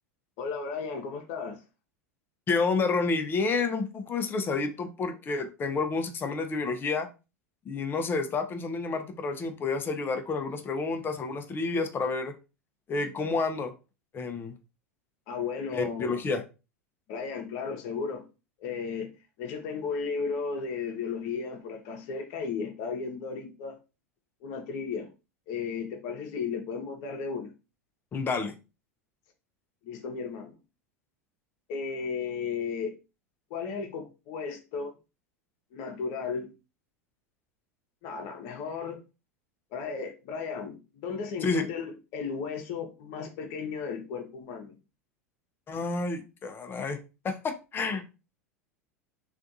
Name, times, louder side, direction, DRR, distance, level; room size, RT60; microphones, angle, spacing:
voice 1, 0.4-1.6 15.3-16.2 17.1-18.2 18.6-19.1 19.4-23.8 24.4-25.1 25.5-27.5 29.8-30.6 31.7-32.9 33.5-34.9 35.7-36.5 38.0-39.0 39.7-44.7, left 5 dB, 55° left, 0.9 m, -34 dB
voice 2, 2.5-7.1 7.7-12.3 12.9-13.7 14.1-14.5 15.7-16.4 28.1-28.5 41.4-41.7 45.7-47.0 47.2-48.0, left 4 dB, 25° left, 0.6 m, -29 dB
3.4 x 2.4 x 2.6 m
hypercardioid pair, 85°, 8 cm